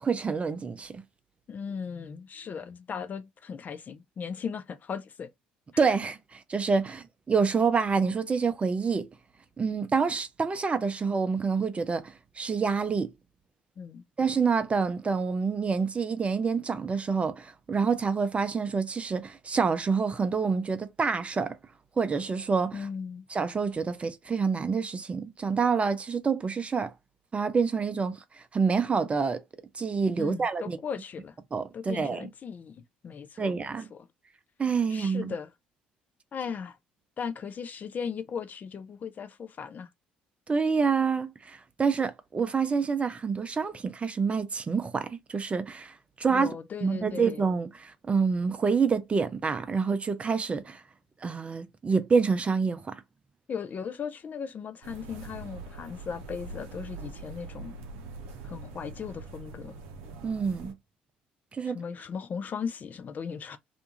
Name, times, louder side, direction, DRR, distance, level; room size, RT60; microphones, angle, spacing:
voice 1, 0.0-0.9 5.8-9.1 9.6-13.1 14.2-21.6 22.0-22.9 23.3-26.9 27.3-29.4 29.7-30.8 31.5-32.3 33.4-33.9 34.6-35.3 40.5-46.5 46.8-50.8 51.2-53.0 60.2-60.7 61.5-61.8, right 5 dB, 30° right, 0.5 m, -27 dB
voice 2, 1.5-5.3 13.8-14.0 22.7-23.2 30.2-31.3 31.7-32.7 33.0-33.6 33.9-34.1 34.9-35.5 36.3-36.8 37.2-39.9 46.3-47.4 53.5-57.7 58.4-59.8 61.7-63.6, left 6 dB, 40° left, 0.4 m, -37 dB
sound 1, 54.8-60.7, right 3 dB, 65° right, 0.6 m, -43 dB
2.5 x 2.3 x 2.8 m
hypercardioid pair, 55°, 4 cm